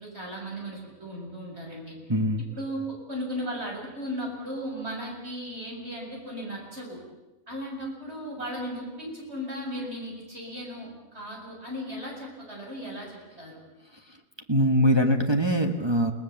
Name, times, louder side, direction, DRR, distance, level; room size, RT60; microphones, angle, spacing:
voice 1, 0.0-1.9 2.5-2.8 3.1-7.0 7.5-13.6, equal, 50° right, -1 dB, 7.3 m, -36 dB
voice 2, 2.1-2.4 14.5-16.1, equal, 20° right, 3 dB, 1.6 m, -22 dB
29.0 x 19.0 x 7.3 m, 1.0 s
omnidirectional pair, 1.4 m